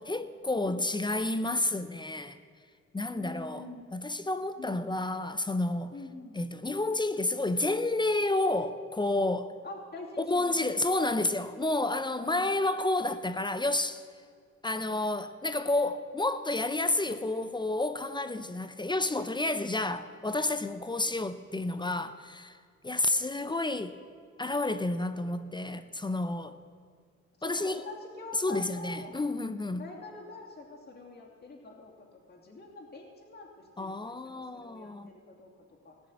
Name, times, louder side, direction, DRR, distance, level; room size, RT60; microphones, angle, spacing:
voice 1, 0.0-2.4 2.9-3.7 3.9-5.9 6.3-9.5 10.2-14.0 14.6-22.6 22.8-24.0 24.4-26.6 27.4-27.8 28.4-29.8 33.8-35.1, left 2 dB, 15° left, 0.6 m, -30 dB
voice 2, 3.1-3.8 4.6-4.8 5.9-6.4 9.6-10.8 12.2-12.5 27.4-29.2 29.8-36.0, left 3 dB, 30° left, 2.8 m, -45 dB
17.0 x 6.3 x 8.5 m
cardioid pair, 90°, 30 cm